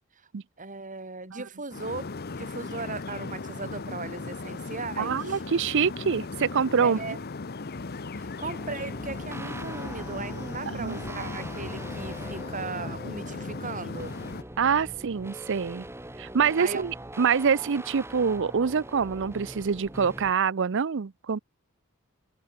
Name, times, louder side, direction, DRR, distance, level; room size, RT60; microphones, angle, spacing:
voice 1, 0.6-2.1 2.4-5.4 6.8-7.2 8.2-14.1 16.6-16.8, right 3 dB, 35° right, 5.1 m, -37 dB
sound 1, 1.7-14.4, left 3 dB, 45° left, 0.8 m, -37 dB
voice 2, 5.0-7.0 10.7-11.0 14.6-15.9 16.2-21.4, right 6 dB, 55° right, 0.5 m, -25 dB
sound 2, 7.7-13.2, left 1 dB, 85° left, 2.4 m, -49 dB
sound 3, 8.4-20.3, right 1 dB, 10° right, 5.6 m, -42 dB
head